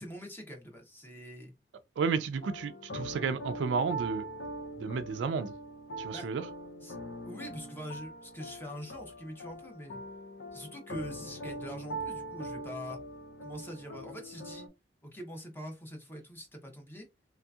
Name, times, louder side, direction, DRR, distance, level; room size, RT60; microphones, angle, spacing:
voice 1, 0.0-1.5 6.1-6.3 6.8-7.0 7.2-10.0 10.5-13.0 13.4-14.7 15.0-17.1, equal, 10° left, 0.6 m, -44 dB
voice 2, 2.0-4.2 4.8-5.5 6.0-6.4, right 5 dB, 75° right, 0.3 m, -32 dB
sound 1, 2.4-14.7, right 1 dB, 70° left, 0.6 m, -42 dB
3.2 x 2.7 x 2.3 m
head